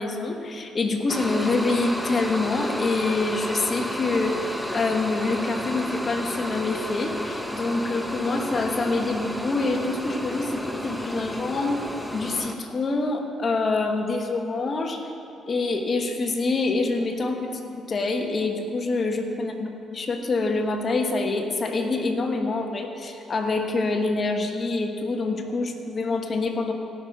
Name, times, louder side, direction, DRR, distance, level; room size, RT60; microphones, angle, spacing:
voice 1, 0.0-11.8 12.1-15.0 15.5-26.7, left 3 dB, 40° left, 4 dB, 1.2 m, -26 dB
sound 1, 1.1-12.5, equal, ahead, 0.8 m, -32 dB
16.5 x 6.2 x 4.7 m, 2.7 s
cardioid pair, 90°, 0 cm